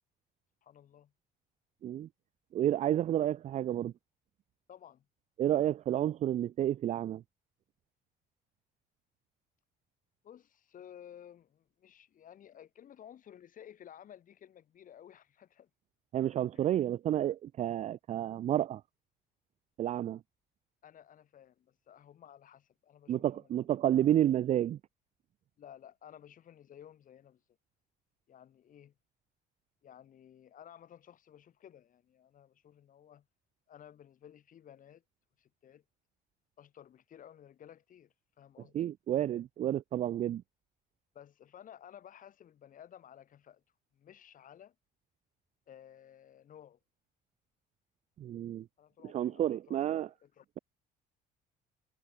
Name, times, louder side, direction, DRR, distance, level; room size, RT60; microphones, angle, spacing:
voice 1, 0.6-1.1 4.7-5.0 10.2-15.7 16.5-16.7 20.8-23.7 25.6-27.4 28.3-28.9 29.8-33.2 33.7-35.0 35.4-35.8 36.6-38.9 41.1-43.6 43.9-44.7 45.7-46.8 48.8-49.8 50.2-50.4, left 10 dB, 50° left, 3.2 m, -55 dB
voice 2, 2.5-3.9 5.4-7.2 16.1-18.8 19.8-20.2 23.1-24.8 38.7-40.4 48.2-48.7 49.0-50.1, right 11 dB, 40° right, 0.4 m, -30 dB
cardioid pair, 110°, 17 cm